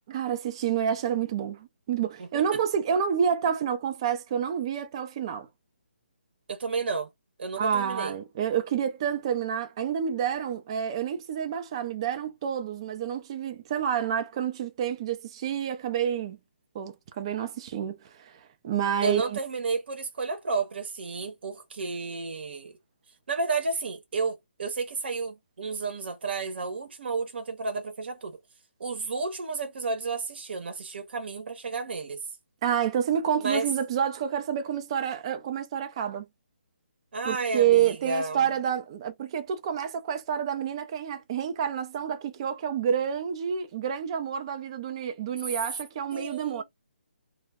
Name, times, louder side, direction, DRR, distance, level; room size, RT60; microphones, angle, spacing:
voice 1, 0.1-5.5 7.6-16.4 16.7-19.4 32.6-36.3 37.3-46.6, right 8 dB, 25° right, 0.3 m, -28 dB
voice 2, 2.2-2.6 6.5-7.1 7.4-8.1 19.0-22.8 23.3-28.4 28.8-32.3 33.4-33.7 37.1-38.4 46.1-46.6, right 4 dB, 60° right, 0.8 m, -32 dB
2.1 x 2.0 x 3.4 m
hypercardioid pair, 165°, 6 cm